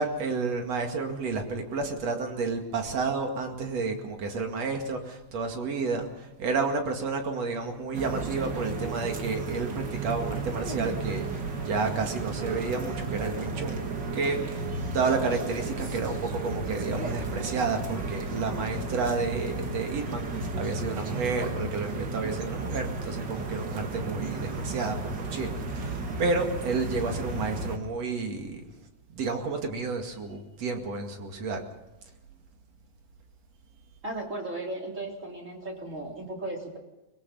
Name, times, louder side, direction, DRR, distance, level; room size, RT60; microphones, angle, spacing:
voice 1, 0.0-13.8 14.1-28.7 29.1-31.6, right 4 dB, 55° right, 4 dB, 3.2 m, -31 dB
sound 1, 7.9-27.8, right 3 dB, 40° right, 2.1 m, -33 dB
voice 2, 34.0-36.8, right 2 dB, 25° right, 0 dB, 3.6 m, -36 dB
23.5 x 22.0 x 5.5 m, 1.0 s
omnidirectional pair, 3.7 m